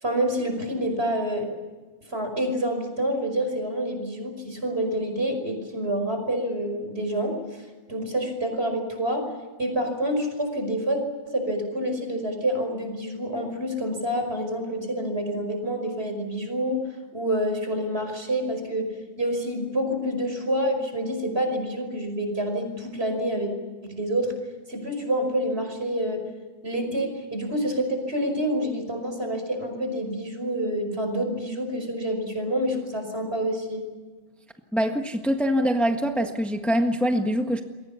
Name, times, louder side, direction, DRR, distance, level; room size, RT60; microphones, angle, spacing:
voice 1, 0.0-1.5 2.1-9.3 9.6-11.0 11.3-16.8 17.1-18.9 19.2-23.5 23.8-24.3 24.7-26.2 26.6-33.8, equal, 55° right, 5 dB, 5.6 m, -27 dB
voice 2, 34.7-37.6, equal, ahead, 4 dB, 1.5 m, -24 dB
28.0 x 23.0 x 7.0 m, 1.3 s
omnidirectional pair, 1.2 m